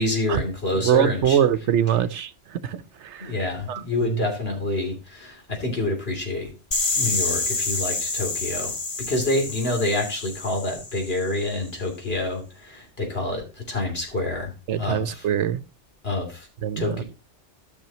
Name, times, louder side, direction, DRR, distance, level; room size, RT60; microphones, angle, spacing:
voice 1, 0.0-1.4 3.2-6.5 7.0-15.2 16.0-16.5 16.8-17.0, left 2 dB, 60° left, 3.3 m, -27 dB
voice 2, 0.7-3.3 3.7-4.3 14.7-15.6 16.6-17.0, right 9 dB, 80° right, 1.1 m, -23 dB
sound 1, 6.7-11.5, left 3 dB, 25° left, 0.8 m, -28 dB
14.0 x 6.3 x 2.9 m
omnidirectional pair, 1.2 m